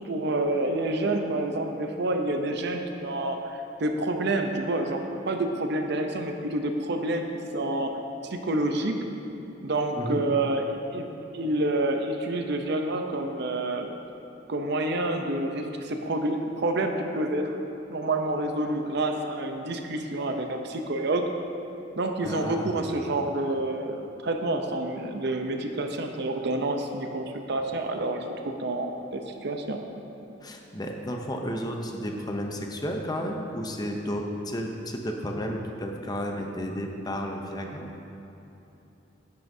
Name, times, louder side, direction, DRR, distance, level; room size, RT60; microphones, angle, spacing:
voice 1, 0.0-7.3 7.5-8.0 8.3-8.9 9.6-10.7 10.9-11.1 11.3-13.9 14.5-17.6 17.9-21.2 22.0-29.8, right 2 dB, 65° right, 5 dB, 0.6 m, -28 dB
voice 2, 22.2-22.9 30.4-37.9, equal, 20° left, 2 dB, 0.7 m, -32 dB
10.0 x 9.3 x 2.7 m, 2.9 s
head